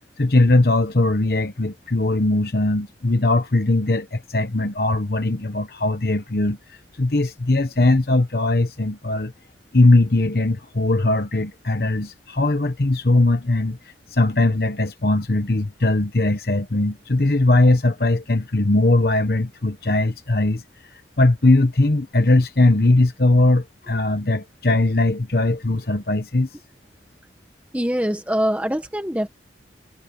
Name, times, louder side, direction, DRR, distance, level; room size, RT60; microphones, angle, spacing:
voice 1, 0.2-6.6 7.0-9.3 9.7-13.8 14.1-20.6 21.2-26.5, left 2 dB, 55° left, 1.0 m, -19 dB
voice 2, 27.7-29.3, equal, 10° right, 1.6 m, -23 dB
head